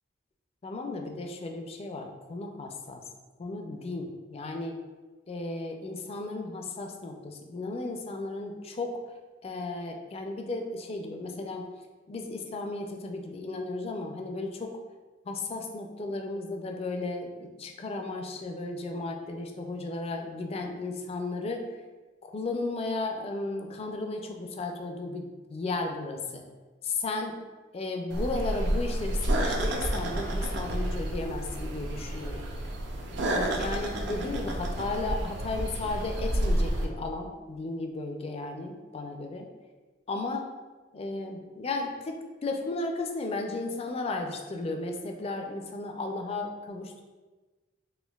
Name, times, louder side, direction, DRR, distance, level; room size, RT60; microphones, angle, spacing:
voice 1, 0.6-3.0 3.4-4.8 5.3-8.9 9.4-11.6 12.1-14.7 15.3-21.6 22.2-26.4 26.8-27.3 27.7-32.4 33.1-39.5 40.1-40.5 40.9-47.0, left 2 dB, 30° left, 3 dB, 0.3 m, -34 dB
sound 1, 28.1-36.9, right 1 dB, 65° right, 0.5 m, -30 dB
4.3 x 2.6 x 2.3 m, 1.3 s
head